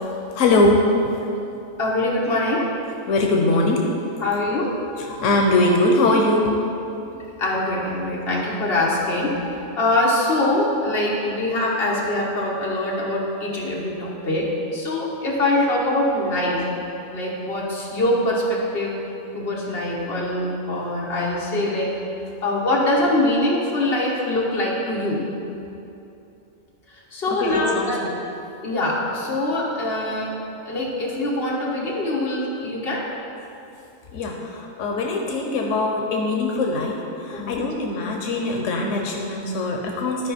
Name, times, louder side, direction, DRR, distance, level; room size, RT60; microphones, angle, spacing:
voice 1, 0.1-0.9 3.1-3.9 5.0-6.5 27.4-28.2 34.1-40.3, left 2 dB, 90° left, 1 dB, 1.1 m, -22 dB
voice 2, 1.8-2.6 4.2-4.7 7.4-16.6 17.1-19.0 19.3-22.0 22.4-25.2 26.9-28.0 28.6-30.4 30.7-33.0 37.3-37.6, left 1 dB, 50° left, -4 dB, 1.6 m, -23 dB
12.5 x 5.1 x 4.2 m, 2.8 s
omnidirectional pair, 1.3 m